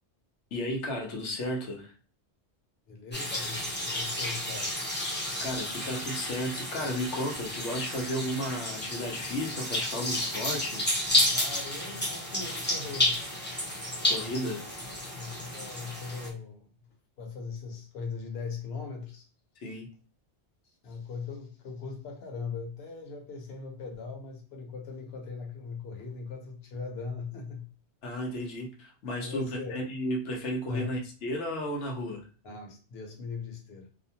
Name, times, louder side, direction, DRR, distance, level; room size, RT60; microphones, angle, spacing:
voice 1, 0.5-1.9 5.4-10.9 14.0-14.6 19.6-19.9 28.0-32.2, left 1 dB, 90° left, 1.0 m, -33 dB
voice 2, 2.9-4.8 11.3-13.2 14.4-14.5 15.2-16.7 17.2-19.3 20.8-27.7 29.2-29.8 30.7-30.9 32.4-33.9, left 5 dB, 65° left, 1.0 m, -39 dB
sound 1, 3.1-16.3, left 1 dB, 10° left, 0.6 m, -31 dB
2.5 x 2.1 x 2.7 m
omnidirectional pair, 1.2 m